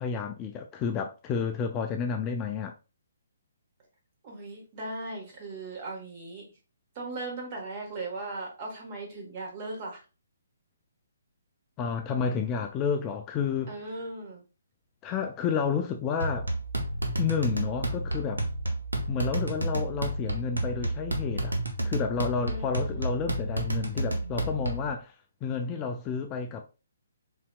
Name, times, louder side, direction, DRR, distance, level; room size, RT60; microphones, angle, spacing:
voice 1, 0.0-2.7 11.8-13.7 15.0-16.5 17.2-18.4 19.1-21.5 21.8-25.1 25.4-26.6, left 6 dB, 20° left, 0.3 m, -30 dB
voice 2, 4.2-6.4 6.9-10.0 13.7-14.4 22.4-23.0, right 2 dB, 35° right, 1.3 m, -38 dB
sound 1, 16.2-24.9, right 1 dB, 75° right, 0.7 m, -31 dB
3.9 x 2.8 x 2.2 m
figure-of-eight pair, 135°, 0 cm